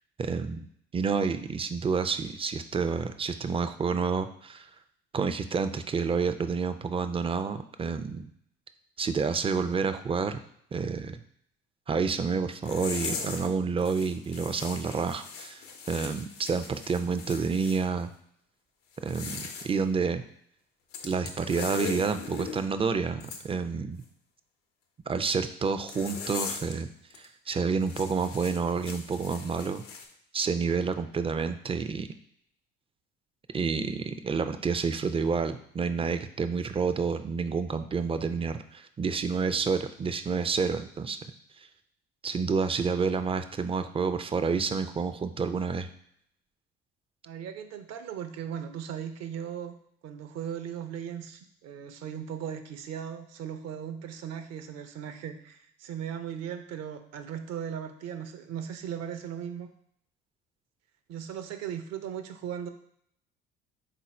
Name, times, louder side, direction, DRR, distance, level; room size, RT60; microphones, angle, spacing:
voice 1, 0.2-0.7 0.9-4.7 5.1-8.3 9.0-10.4 10.7-11.2 11.9-18.1 19.0-20.2 21.0-24.0 25.1-26.9 27.2-29.8 30.3-32.1 33.5-41.2 41.6-41.7 42.2-45.9, right 5 dB, 20° right, 10 dB, 0.4 m, -29 dB
sound 1, 12.6-13.5 13.8-17.8 18.9-19.7 20.9-22.6 23.2-23.4 25.9-26.8 27.1-27.3 27.8-30.0, left 5 dB, 80° left, 0.7 m, -39 dB
voice 2, 47.3-49.7 50.0-59.7 61.1-62.7, right 8 dB, 55° right, 8 dB, 0.6 m, -37 dB
3.9 x 2.5 x 4.2 m, 0.70 s
hypercardioid pair, 60°, 30 cm